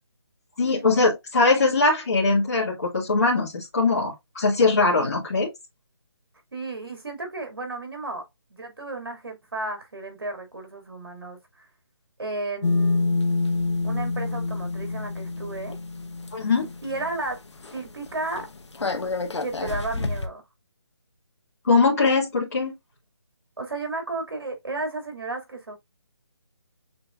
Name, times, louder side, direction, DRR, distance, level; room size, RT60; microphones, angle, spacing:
voice 1, 0.6-5.5 16.3-16.7 21.6-22.7, left 3 dB, 35° left, 1.9 m, -21 dB
voice 2, 6.5-11.7 12.2-13.1 13.8-15.8 16.8-17.4 17.7-18.5 19.4-20.4 23.6-25.8, right 2 dB, 55° right, 2.4 m, -33 dB
sound 1, 12.6-17.3 17.6-17.8 18.1-20.3, left 3 dB, 90° left, 1.0 m, -27 dB
6.5 x 3.4 x 2.4 m
hypercardioid pair, 180°, 14 cm